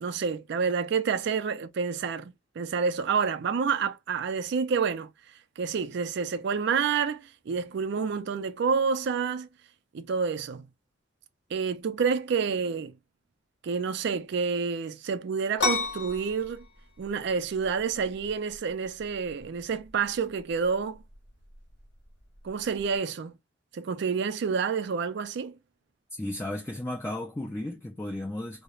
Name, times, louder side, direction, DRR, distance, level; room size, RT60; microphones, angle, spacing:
voice 1, 0.0-5.1 5.6-9.5 9.9-10.7 11.5-12.9 13.6-16.7 17.0-21.0 22.4-23.3 23.7-25.5, right 5 dB, 60° right, 0.4 m, -28 dB
sound 1, 15.6-23.0, left 3 dB, 60° left, 0.8 m, -36 dB
voice 2, 26.1-28.6, left 1 dB, 10° left, 0.3 m, -34 dB
2.4 x 2.0 x 2.9 m
head